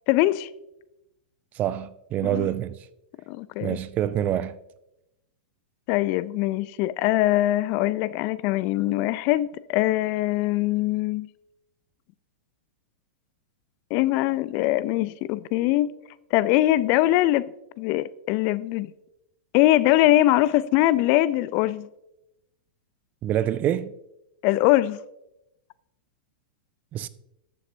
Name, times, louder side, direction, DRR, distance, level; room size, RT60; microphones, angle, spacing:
voice 1, 0.1-0.5 2.2-2.5 3.3-3.8 5.9-11.3 13.9-15.9 16.3-17.5 17.8-18.9 19.5-21.9 24.4-25.0, left 16 dB, 45° left, 0.4 m, -22 dB
voice 2, 1.6-2.8 3.6-4.5 23.2-23.9 26.9-27.1, right 11 dB, 30° right, 0.4 m, -26 dB
13.0 x 7.0 x 2.6 m
hypercardioid pair, 110°, 5 cm